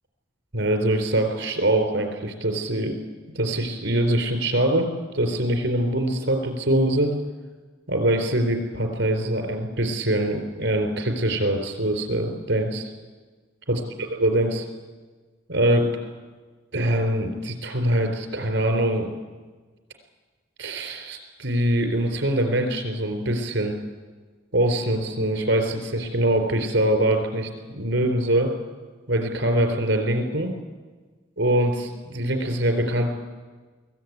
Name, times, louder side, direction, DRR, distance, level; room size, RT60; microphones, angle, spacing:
voice 1, 0.5-3.0 3.3-4.9 5.1-7.1 7.9-12.9 13.7-13.8 14.2-14.7 15.5-15.9 16.7-19.1 20.6-23.8 24.5-28.5 29.1-30.5 31.4-33.2, right 1 dB, 75° right, 5 dB, 4.1 m, -23 dB
23.0 x 16.5 x 9.5 m, 1.4 s
head